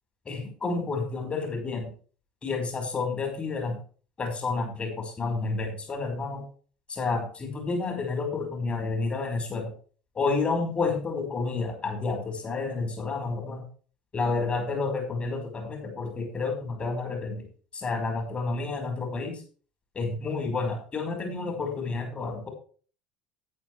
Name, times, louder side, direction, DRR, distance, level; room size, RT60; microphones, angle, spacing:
voice 1, 0.2-1.9 2.4-3.8 4.2-6.5 6.9-9.7 10.1-13.6 14.1-17.5 17.7-19.4 19.9-22.5, left 3 dB, 25° left, 3 dB, 5.1 m, -30 dB
10.0 x 9.5 x 4.7 m, 0.41 s
figure-of-eight pair, 65°, 4 cm